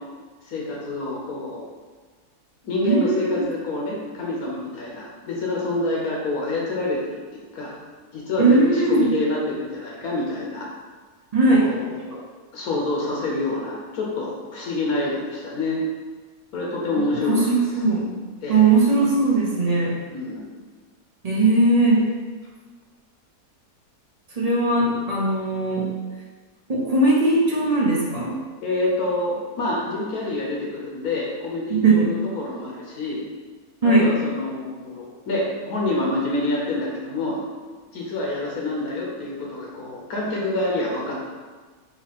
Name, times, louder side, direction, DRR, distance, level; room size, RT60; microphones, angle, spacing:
voice 1, 0.4-1.6 2.6-7.8 8.1-10.7 11.5-12.2 12.5-15.8 16.5-17.4 18.4-18.6 20.1-20.5 28.6-33.2 33.8-37.4 37.9-41.3, left 2 dB, 70° left, -3 dB, 1.2 m, -27 dB
voice 2, 2.8-3.4 8.4-9.1 11.3-11.6 17.3-18.1 18.5-20.0 21.2-22.1 24.4-25.9 26.7-28.4 31.7-32.1 33.8-34.1, right 3 dB, 45° right, -4 dB, 0.4 m, -19 dB
4.0 x 2.7 x 4.2 m, 1.4 s
omnidirectional pair, 1.6 m